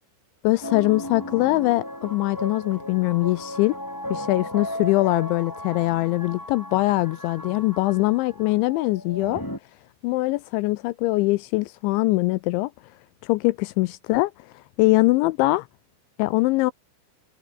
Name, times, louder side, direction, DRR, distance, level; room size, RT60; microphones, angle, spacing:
voice 1, 0.4-3.8 4.1-9.4 10.0-12.7 13.2-14.3 14.8-15.7 16.2-16.7, left 21 dB, 80° left, 2.7 m, -22 dB
sound 1, 0.6-9.6, equal, 5° left, 6.2 m, -35 dB
omnidirectional pair, 5.7 m